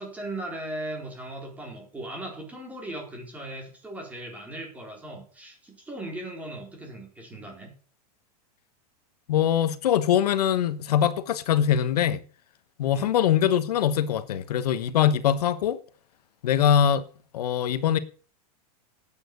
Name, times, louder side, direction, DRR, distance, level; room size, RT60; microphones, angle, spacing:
voice 1, 0.0-7.7 12.9-13.1, right 1 dB, 5° right, 4.2 m, -38 dB
voice 2, 9.3-12.2 12.8-15.8 16.4-17.0 17.3-18.0, left 9 dB, 85° left, 1.3 m, -23 dB
11.5 x 8.9 x 6.8 m
supercardioid pair, 160°, 20 cm